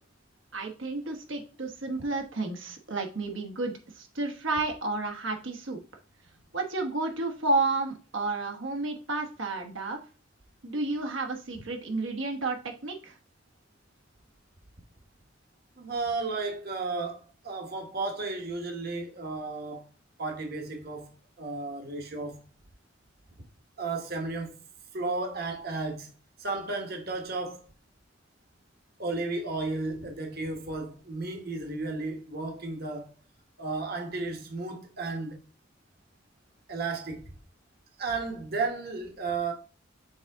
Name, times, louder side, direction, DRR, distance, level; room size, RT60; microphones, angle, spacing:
voice 1, 0.5-5.8 6.5-10.0 10.6-13.2, right 3 dB, 75° right, 1.2 m, -31 dB
voice 2, 15.8-19.8 20.2-21.1 21.4-22.4 23.8-24.6 24.9-26.1 26.4-27.7 29.0-33.1 33.6-35.4 36.7-37.3 38.0-39.5, right 3 dB, 50° right, 1.2 m, -33 dB
7.1 x 3.9 x 3.5 m
head